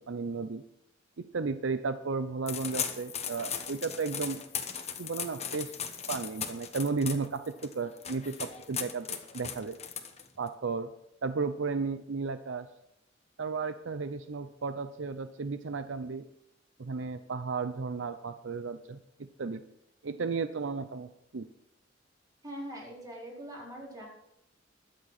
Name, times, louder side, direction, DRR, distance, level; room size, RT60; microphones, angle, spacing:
voice 1, 0.1-0.6 1.2-4.4 5.0-5.7 6.1-9.8 10.4-10.9 11.2-12.7 13.4-16.2 16.8-19.6 20.0-21.4, right 4 dB, 70° right, 10 dB, 0.6 m, -34 dB
sound 1, 2.5-10.5, left 7 dB, 35° left, 1.1 m, -38 dB
voice 2, 22.4-24.1, equal, 20° right, -4 dB, 4.5 m, -42 dB
21.0 x 7.7 x 4.1 m, 0.83 s
head